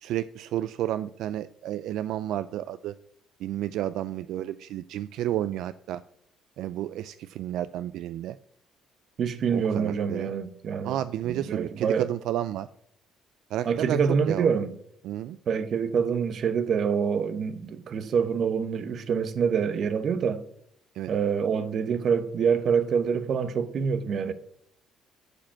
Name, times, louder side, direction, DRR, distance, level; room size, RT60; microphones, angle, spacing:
voice 1, 0.0-2.9 3.4-6.0 6.6-8.4 9.5-10.3 10.8-12.7 13.5-14.0 14.3-14.6 15.0-15.4 20.9-21.1, right 12 dB, 65° right, 0.3 m, -31 dB
voice 2, 9.2-11.0 11.3-12.1 13.7-14.8 15.5-20.4 21.1-24.3, right 6 dB, 40° right, 0.9 m, -26 dB
11.5 x 5.0 x 7.5 m
cardioid pair, 170°, 0 cm